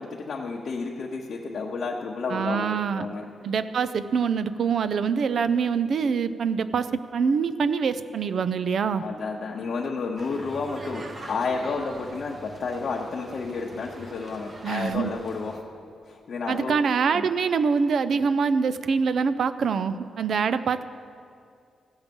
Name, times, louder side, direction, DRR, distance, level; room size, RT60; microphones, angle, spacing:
voice 1, 0.0-3.2 9.0-15.6 16.1-16.8 17.1-17.3, left 4 dB, 50° left, -2 dB, 0.8 m, -31 dB
voice 2, 2.3-3.1 3.4-9.0 14.6-15.1 16.5-20.8, right 6 dB, 55° right, 13 dB, 0.4 m, -25 dB
sound 1, 10.2-15.6, right 1 dB, 30° right, 0.8 m, -43 dB
15.5 x 7.2 x 5.3 m, 2.3 s
wide cardioid pair, 175°, 0 cm